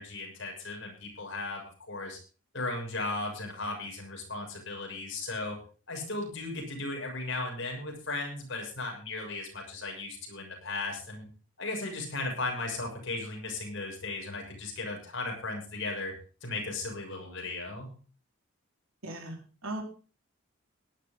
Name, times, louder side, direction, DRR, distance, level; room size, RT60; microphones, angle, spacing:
voice 1, 0.0-1.6 1.9-2.2 2.5-5.6 5.9-11.3 11.6-16.1 16.4-17.9, left 2 dB, 55° left, 1 dB, 6.9 m, -36 dB
voice 2, 19.0-19.8, right 1 dB, 70° right, 2 dB, 4.4 m, -38 dB
17.5 x 12.0 x 3.9 m, 0.37 s
head